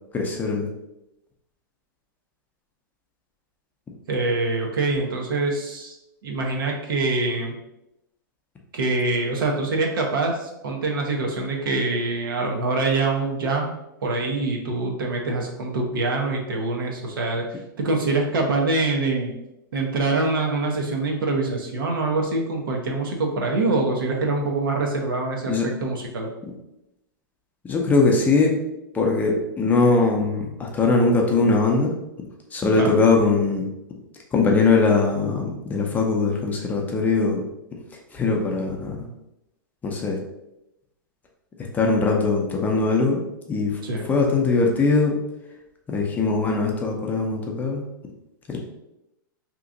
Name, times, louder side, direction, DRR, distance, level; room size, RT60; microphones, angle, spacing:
voice 1, 0.1-0.7 25.5-25.7 27.6-28.5 28.9-31.9 32.5-33.6 34.3-37.4 38.1-39.0 39.8-40.2 41.7-43.2 43.5-43.7 44.1-45.2 45.9-47.8 48.5-48.6, left 3 dB, 15° left, 0 dB, 0.6 m, -21 dB
voice 2, 4.1-5.9 6.2-7.5 8.7-13.7 14.0-17.4 17.8-19.3 19.7-26.3 32.7-33.0 43.8-44.0, right 3 dB, 80° right, 0 dB, 0.9 m, -24 dB
2.9 x 2.4 x 3.7 m, 0.89 s
hypercardioid pair, 135°, 11 cm